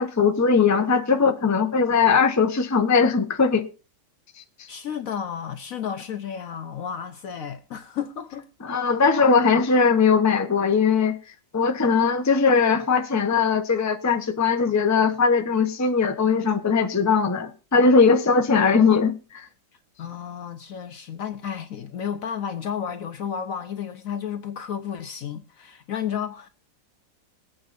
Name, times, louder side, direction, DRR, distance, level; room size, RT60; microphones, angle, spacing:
voice 1, 0.0-3.6 8.6-11.2 11.5-19.4, left 5 dB, 20° left, 0.4 m, -20 dB
voice 2, 4.7-8.5 20.0-26.5, left 8 dB, 60° left, 1.0 m, -32 dB
22.0 x 8.7 x 2.6 m
omnidirectional pair, 1.9 m